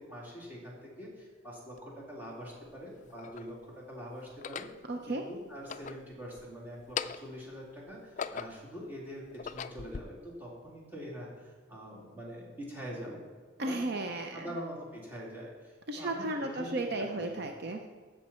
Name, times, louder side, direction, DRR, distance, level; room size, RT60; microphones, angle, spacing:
voice 1, 0.1-4.7 5.1-13.2 13.6-13.8 14.3-17.4, equal, 10° right, -7 dB, 3.1 m, -44 dB
sound 1, 1.8-1.9 2.7-3.5 4.3-4.8 5.5-6.5 6.8-7.4 7.9-8.7 9.2-10.0, left 7 dB, 35° left, 0.3 m, -40 dB
voice 2, 4.9-5.2 13.6-14.5 15.9-17.9, right 2 dB, 55° right, 4 dB, 0.7 m, -34 dB
16.0 x 6.6 x 4.4 m, 1.5 s
head